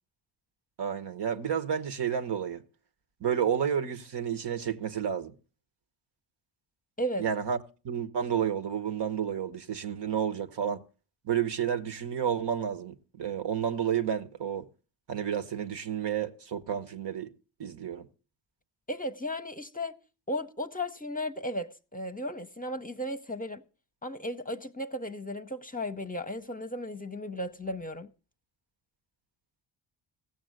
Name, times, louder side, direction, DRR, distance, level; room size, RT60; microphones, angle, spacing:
voice 1, 0.8-2.6 3.2-5.3 7.2-7.6 7.8-10.8 11.2-14.7 15.1-17.3 17.6-18.1, right 8 dB, 55° right, 1.2 m, -31 dB
voice 2, 18.9-20.0 20.3-23.6 24.0-28.1, equal, 15° left, 0.9 m, -35 dB
16.0 x 7.1 x 6.5 m
supercardioid pair, 45°, 50 cm